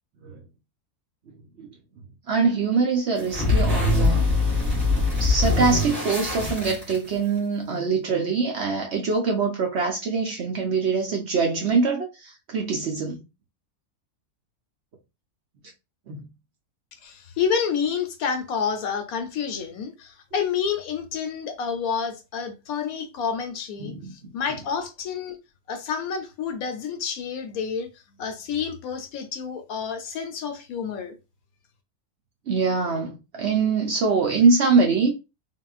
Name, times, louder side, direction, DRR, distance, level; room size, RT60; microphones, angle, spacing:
voice 1, 2.3-4.3 4.7-4.8 5.2-13.2 16.1-16.3 23.8-24.1 32.5-35.1, right 4 dB, 60° right, 0.8 m, -23 dB
sound 1, 3.2-7.4, left 2 dB, 35° right, 2.0 m, -23 dB
voice 2, 17.0-25.4 25.7-27.9 28.2-31.1, left 6 dB, 75° left, 1.1 m, -29 dB
3.6 x 2.3 x 2.3 m
omnidirectional pair, 1.6 m